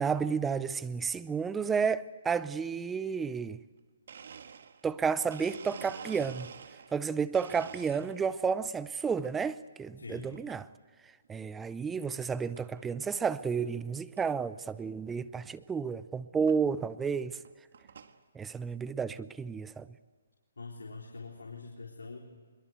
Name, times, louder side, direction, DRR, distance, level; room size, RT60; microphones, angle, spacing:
voice 1, 0.0-3.6 4.8-6.5 6.9-10.7 11.3-17.4 18.4-19.9, right 6 dB, 10° right, 0.6 m, -31 dB
Domestic sounds home sounds, 4.1-7.0 7.3-8.4 8.8-9.3 10.3-10.7 11.2-11.3 12.2-12.3 12.6-12.9 13.3-13.4 13.6-13.7 14.2-14.3 15.6-15.7 16.5-16.6 17.3-18.2, right 6 dB, 60° right, 1.6 m, -48 dB
voice 2, 10.0-10.3 20.6-22.2, left 4 dB, 85° left, 4.1 m, -44 dB
24.0 x 22.0 x 8.0 m
hypercardioid pair, 150°, 0 cm